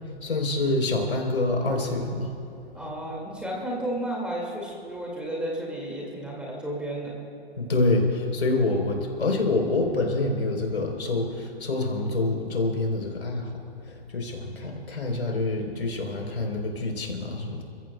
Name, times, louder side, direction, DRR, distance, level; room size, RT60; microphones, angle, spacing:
voice 1, 0.2-2.3 7.6-17.6, left 2 dB, 80° left, 1 dB, 3.8 m, -26 dB
voice 2, 2.7-7.2, right 1 dB, 5° right, -3 dB, 2.2 m, -32 dB
30.0 x 15.0 x 2.3 m, 2.9 s
hypercardioid pair, 140°, 32 cm